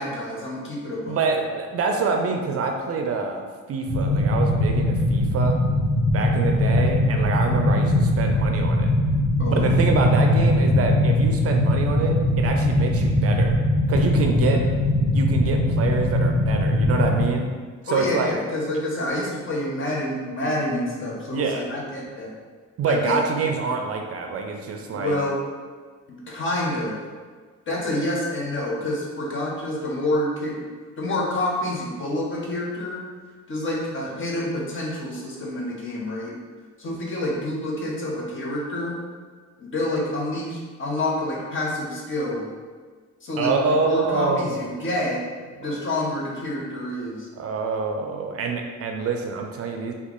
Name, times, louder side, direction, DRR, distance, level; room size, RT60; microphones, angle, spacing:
voice 1, 0.0-1.2 9.4-9.9 14.4-14.6 17.9-22.3 22.9-23.2 24.9-25.4 26.1-27.0 27.7-30.7 31.0-33.0 33.5-36.3 36.8-39.0 39.6-42.5 43.2-45.2 45.6-47.3, left 1 dB, 40° left, -3 dB, 0.9 m, -28 dB
voice 2, 1.1-5.6 6.1-8.9 9.5-13.5 13.9-14.6 15.1-17.5 17.8-18.4 21.3-21.6 22.8-25.2 43.4-44.6 45.6-45.8 47.4-49.9, right 4 dB, 50° right, 3 dB, 0.4 m, -26 dB
sound 1, 3.9-17.3, left 1 dB, 10° left, 0.7 m, -20 dB
2.9 x 2.3 x 3.7 m, 1.5 s
cardioid pair, 90°, 30 cm